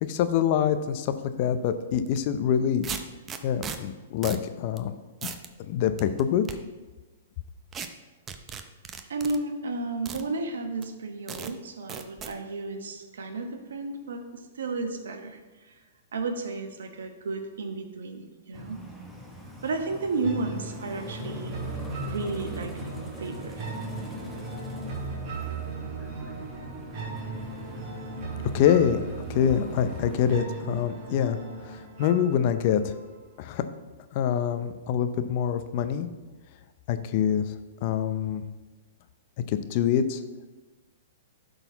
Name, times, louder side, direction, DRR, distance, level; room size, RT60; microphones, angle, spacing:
voice 1, 0.0-2.9 3.4-4.9 5.7-6.5 28.5-31.4 31.6-32.9 33.4-33.6 34.1-36.1 36.9-37.5 37.8-38.4 39.5-40.2, left 9 dB, 45° left, 10 dB, 0.6 m, -25 dB
sound 1, 2.1-2.2 2.8-3.8 4.2-4.5 4.8-4.9 5.2-5.5 6.0-6.6 7.7-7.9 8.3-9.4 10.1-10.2 10.8-10.9 11.3-11.5 11.9-12.3, right 7 dB, 20° right, 0.5 m, -36 dB
voice 2, 9.1-15.4 15.7-15.8 16.1-18.8 19.6-21.6 22.0-22.9 23.2-23.6, right 3 dB, 80° right, 6 dB, 1.1 m, -33 dB
sound 2, 18.5-30.4, left 2 dB, ahead, 1.1 m, -42 dB
sound 3, 20.2-33.2, right 5 dB, 50° right, 1.8 m, -38 dB
11.5 x 4.0 x 4.0 m, 1.2 s
hypercardioid pair, 135°, 0 cm